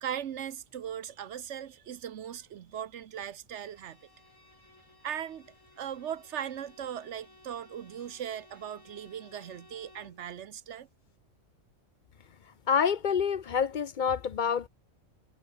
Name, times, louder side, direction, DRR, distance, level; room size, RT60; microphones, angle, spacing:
voice 1, 0.0-4.0 5.0-10.9, right 9 dB, 60° right, 1.0 m, -39 dB
Bowed string instrument, 3.6-10.3, left 2 dB, 70° left, 6.7 m, -58 dB
voice 2, 12.7-14.7, left 7 dB, 50° left, 0.6 m, -27 dB
omnidirectional pair, 1.4 m